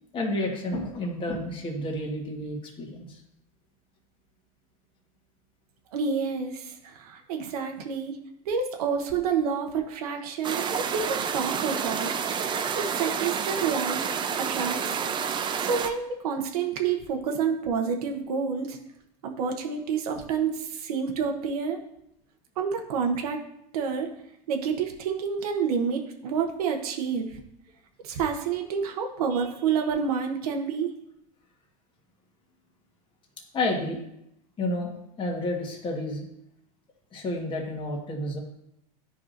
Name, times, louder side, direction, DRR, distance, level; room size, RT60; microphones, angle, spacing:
voice 1, 0.1-3.2 33.5-34.0 34.6-34.9 35.2-36.2 37.1-38.4, left 1 dB, 25° left, 0 dB, 1.5 m, -30 dB
voice 2, 5.9-6.7 7.0-8.1 8.5-12.1 12.7-14.1 14.4-14.8 15.6-18.8 19.2-21.8 22.6-23.4 23.7-24.1 24.5-27.3 28.0-30.9, right 6 dB, 75° right, 3 dB, 1.0 m, -28 dB
sound 1, 10.4-15.9, right 7 dB, 25° right, 0.6 m, -29 dB
10.5 x 4.8 x 2.6 m, 0.78 s
hypercardioid pair, 110°, 19 cm